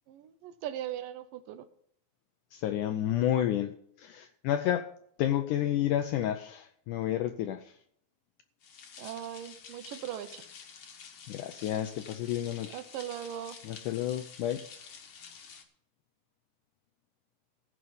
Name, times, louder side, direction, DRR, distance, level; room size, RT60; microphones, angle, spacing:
voice 1, 0.1-1.7 9.0-10.4 12.7-13.6, right 11 dB, 75° right, 2.3 m, -39 dB
voice 2, 2.5-3.7 4.0-4.9 5.2-7.6 11.3-12.8 13.6-14.6, left 11 dB, 80° left, 1.8 m, -30 dB
sound 1, 8.6-15.6, left 6 dB, 55° left, 1.8 m, -49 dB
15.5 x 6.3 x 6.9 m
omnidirectional pair, 4.2 m